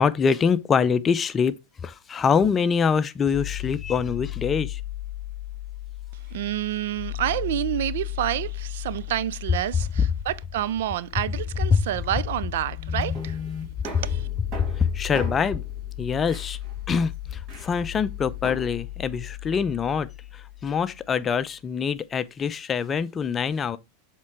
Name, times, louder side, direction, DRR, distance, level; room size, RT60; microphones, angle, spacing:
voice 1, 0.0-1.5 1.8-4.8 11.7-11.9 14.6-15.6 16.0-16.6 16.9-20.1 20.3-23.8, left 6 dB, 25° left, 0.6 m, -24 dB
sound 1, 3.3-21.3, left 15 dB, 55° left, 0.9 m, -36 dB
voice 2, 6.3-13.4 13.8-14.3, right 13 dB, 70° right, 0.4 m, -28 dB
sound 2, 12.7-18.6, left 1 dB, 40° right, 2.6 m, -39 dB
7.3 x 3.7 x 4.5 m
hypercardioid pair, 95°, 0 cm